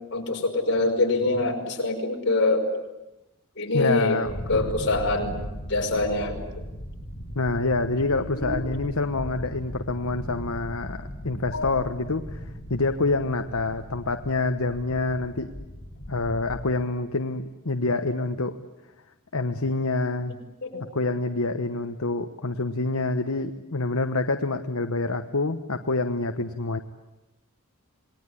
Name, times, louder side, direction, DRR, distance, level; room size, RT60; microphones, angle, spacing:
voice 1, 0.1-2.6 3.6-4.2 4.5-5.4 5.7-6.4 8.4-8.5 11.5-11.7 20.6-20.8, left 2 dB, 55° left, 1 dB, 5.9 m, -24 dB
voice 2, 3.7-5.0 7.3-12.4 12.7-15.5 16.1-18.6 19.3-20.4 20.9-26.8, left 3 dB, 70° left, 7 dB, 1.2 m, -27 dB
sound 1, 4.2-16.7, equal, 30° left, 6.9 m, -38 dB
28.0 x 20.5 x 10.0 m, 1.0 s
head